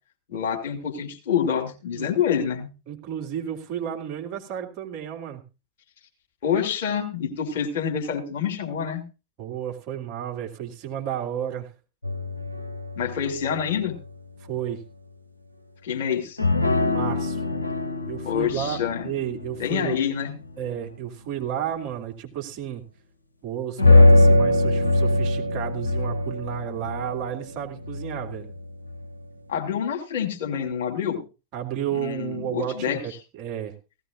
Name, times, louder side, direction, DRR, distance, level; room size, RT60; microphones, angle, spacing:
voice 1, 0.3-2.7 6.4-9.0 13.0-14.0 15.8-16.4 18.2-19.1 19.6-20.4 29.5-31.2 31.9-33.0, left 8 dB, 55° left, 3 dB, 2.9 m, -27 dB
voice 2, 2.9-5.4 9.4-11.7 14.4-14.8 16.9-17.4 18.1-20.0 20.6-22.8 23.4-28.5 31.5-33.1 33.4-33.7, right 10 dB, 40° right, 1 dB, 2.3 m, -32 dB
sound 1, 12.0-14.5 16.4-20.9 23.8-29.2, left 2 dB, 80° left, 0.8 m, -23 dB
17.0 x 15.0 x 2.5 m, 0.31 s
figure-of-eight pair, 90°, 0 cm